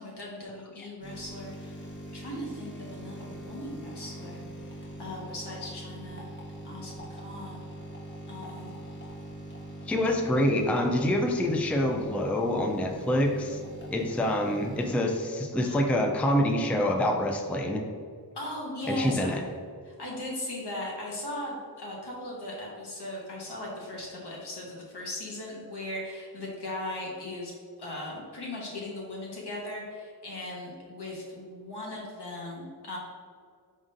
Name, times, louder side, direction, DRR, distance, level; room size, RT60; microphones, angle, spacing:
voice 1, 0.0-4.4 5.0-6.3 6.6-7.6 8.3-8.7 15.6-15.9 18.3-19.4 19.8-27.5 27.8-33.0, left 1 dB, 75° left, -3 dB, 1.3 m, -38 dB
sound 1, 1.0-14.9, right 1 dB, 30° left, 0.9 m, -42 dB
voice 2, 9.9-13.6 13.9-17.8 18.9-19.4, left 1 dB, 5° left, 2 dB, 0.4 m, -26 dB
5.1 x 3.7 x 2.6 m, 2.1 s
wide cardioid pair, 60°, 41 cm